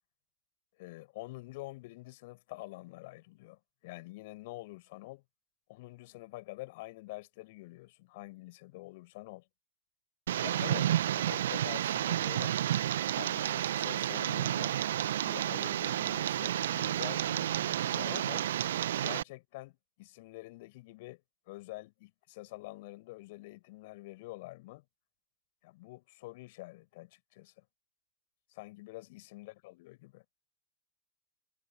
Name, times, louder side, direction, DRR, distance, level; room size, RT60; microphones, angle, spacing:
voice 1, 0.8-5.2 5.7-9.4 10.4-12.5 13.0-14.8 15.2-18.5 19.0-21.2 21.5-24.8 25.6-27.6 28.5-30.2, left 21 dB, 55° left, 6.8 m, -47 dB
Tick, 10.3-19.2, right 11 dB, 65° right, 1.3 m, -31 dB
figure-of-eight pair, 90°, 0 cm